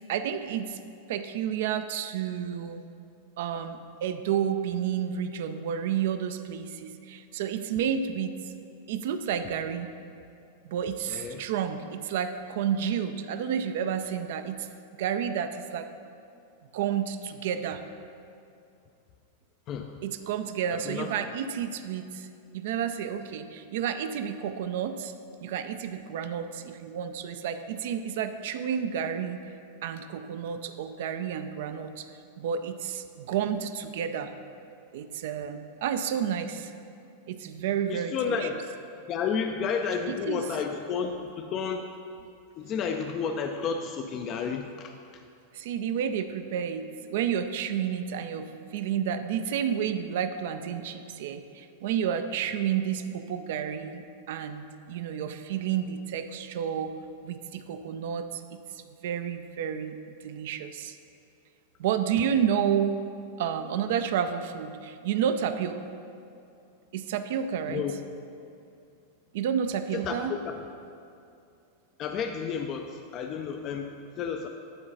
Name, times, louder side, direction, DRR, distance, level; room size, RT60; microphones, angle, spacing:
voice 1, 0.1-0.8 1.1-2.8 3.4-8.4 8.9-9.9 10.6-14.7 15.0-15.9 16.7-17.8 20.0-25.1 25.4-29.4 29.8-32.1 32.4-34.3 34.9-36.7 37.3-38.5 40.1-40.4 45.5-56.9 57.2-60.0 60.2-61.0 61.8-63.0 63.4-65.8 66.9-67.8 69.3-70.3, right 8 dB, 55° right, 9 dB, 0.4 m, -30 dB
voice 2, 11.1-11.4 19.7-19.9 20.7-21.1 37.9-38.5 39.1-41.9 42.6-44.9 67.7-67.9 69.9-70.6 72.0-74.5, left 6 dB, 35° left, 5 dB, 0.4 m, -31 dB
9.8 x 3.8 x 5.6 m, 2.6 s
figure-of-eight pair, 90°, 0 cm